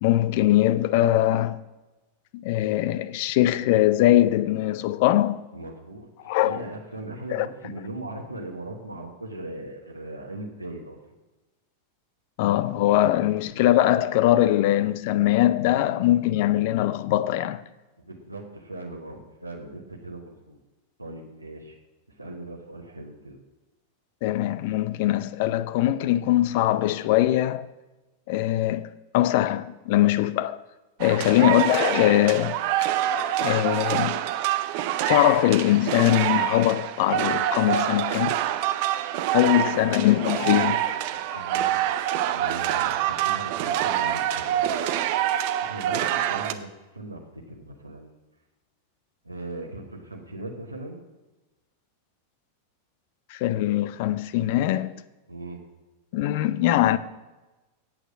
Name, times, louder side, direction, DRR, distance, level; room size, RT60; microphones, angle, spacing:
voice 1, 0.0-1.6 2.3-5.4 6.3-6.6 7.3-7.5 12.4-17.6 24.2-27.7 28.3-28.9 29.1-30.6 31.0-32.9 33.4-34.2 35.1-38.3 39.3-40.8 41.3-41.4 53.3-54.9 56.1-57.0, left 14 dB, 50° left, 0.4 m, -22 dB
voice 2, 5.5-11.0 12.7-12.8 13.1-13.2 18.0-20.6 21.0-21.8 22.1-23.4 31.0-31.4 39.4-39.9 40.6-41.0 41.3-41.8 42.3-44.8 45.6-48.2 49.2-51.0 55.3-55.6, right 2 dB, 85° right, 1.3 m, -39 dB
sound 1, 31.0-46.5, right 12 dB, 45° right, 0.5 m, -26 dB
8.7 x 8.2 x 6.2 m
figure-of-eight pair, 90°, 0 cm